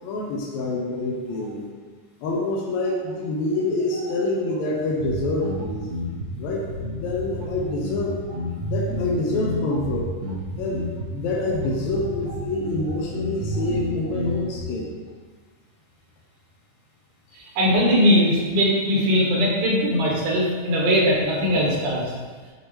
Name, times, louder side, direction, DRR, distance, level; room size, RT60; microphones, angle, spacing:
voice 1, 0.0-1.7 2.2-5.9 6.4-6.7 7.0-8.2 8.7-10.1 10.6-10.9 11.1-14.9 17.3-17.4, left 2 dB, 75° left, -3 dB, 1.9 m, -26 dB
sound 1, 5.0-14.6, left 1 dB, 65° right, 2.1 m, -30 dB
voice 2, 17.3-22.0, equal, 80° right, -4 dB, 3.1 m, -20 dB
8.0 x 4.6 x 3.3 m, 1.4 s
omnidirectional pair, 3.6 m